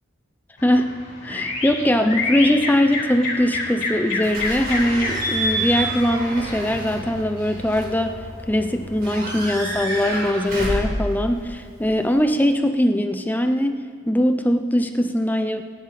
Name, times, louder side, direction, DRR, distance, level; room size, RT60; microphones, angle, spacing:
sound 1, 0.6-7.2, left 3 dB, 60° left, 4.2 m, -29 dB
voice 1, 1.2-8.2 8.5-15.6, left 1 dB, 10° left, 7 dB, 0.6 m, -21 dB
Slam / Squeak / Alarm, 4.2-12.2, right 1 dB, 50° right, 4.6 m, -29 dB
28.0 x 10.5 x 4.2 m, 2.1 s
head